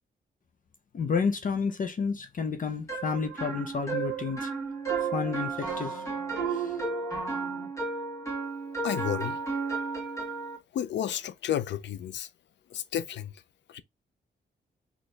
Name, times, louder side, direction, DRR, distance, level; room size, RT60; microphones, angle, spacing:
voice 1, 0.9-4.5 5.1-6.0 6.5-6.8, left 5 dB, 45° left, 0.8 m, -30 dB
sound 1, 2.9-10.6, right 4 dB, 15° left, 1.8 m, -33 dB
voice 2, 8.8-9.4 10.7-12.3 12.7-13.3 13.7-13.8, left 10 dB, 90° left, 0.5 m, -31 dB
4.3 x 3.0 x 3.3 m
wide cardioid pair, 130°, 18 cm